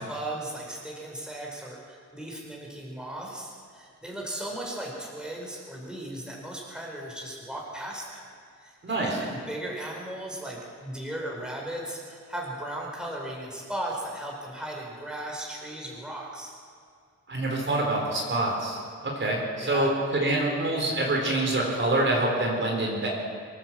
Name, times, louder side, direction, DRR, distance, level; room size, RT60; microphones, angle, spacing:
voice 1, 0.0-8.3 8.6-16.5 19.6-19.9, right 1 dB, 5° right, -2 dB, 4.7 m, -37 dB
voice 2, 8.8-9.2 17.3-18.8 19.0-23.1, right 2 dB, 40° right, -1 dB, 4.0 m, -26 dB
24.5 x 14.5 x 7.5 m, 2.2 s
wide cardioid pair, 145°, 31 cm